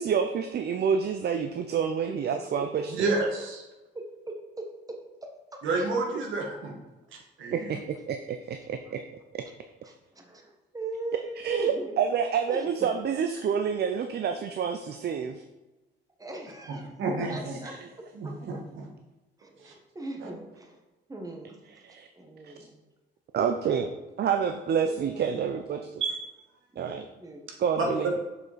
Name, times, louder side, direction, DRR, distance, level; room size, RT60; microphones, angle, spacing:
voice 1, 0.0-3.1 7.5-9.1 9.3-9.5 11.4-15.4 17.2-17.3 17.6-17.8 21.8-22.1 22.4-22.5 23.3-26.0 26.8-27.0 27.6-28.1, right 7 dB, 55° right, 7 dB, 0.6 m, -28 dB
voice 2, 2.6-3.1 3.9-5.7 8.9-9.0 9.8-11.9 12.5-12.9 16.2-16.9 17.3-18.6 19.4-20.8 21.1-21.6 22.1-22.8 24.8-26.0 26.7-27.5, right 2 dB, 15° right, 2 dB, 1.3 m, -41 dB
voice 3, 5.6-6.8 7.4-7.7 17.0-17.6 18.2-18.9 19.7-19.8 26.0-26.2 27.8-27.9, right 3 dB, 80° right, 1 dB, 1.6 m, -29 dB
6.9 x 5.0 x 4.2 m, 1.1 s
cardioid pair, 90°, 20 cm